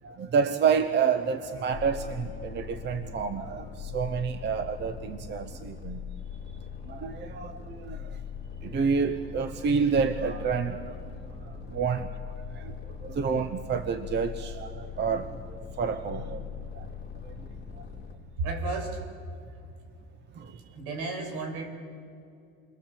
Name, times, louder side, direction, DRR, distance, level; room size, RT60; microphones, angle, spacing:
voice 1, 0.0-6.0 6.8-8.2 8.6-11.0 11.4-16.4 16.7-16.9 17.2-17.3 20.3-20.6, right 6 dB, 30° right, 10 dB, 0.9 m, -29 dB
Bowed string instrument, 0.7-4.9, right 3 dB, 80° right, 4.8 m, -51 dB
sound 1, 1.7-18.1, left 7 dB, 25° left, 2.8 m, -41 dB
voice 2, 16.1-16.5 18.4-19.0 20.7-21.7, right 3 dB, 65° right, 4 dB, 6.3 m, -33 dB
28.5 x 22.0 x 7.5 m, 2.6 s
cardioid pair, 145°, 37 cm